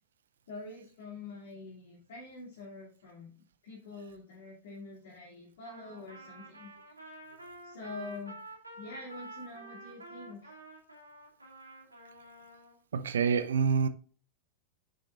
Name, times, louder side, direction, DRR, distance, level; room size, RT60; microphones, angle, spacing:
voice 1, 0.5-3.3 3.6-6.9 7.6-8.3 8.7-10.6, left 3 dB, 60° left, 2.8 m, -45 dB
Trumpet, 5.6-12.8, right 2 dB, 80° right, 2.0 m, -49 dB
voice 2, 12.9-13.9, right 6 dB, 65° right, 0.7 m, -27 dB
9.7 x 6.8 x 2.5 m
figure-of-eight pair, 90°, 0 cm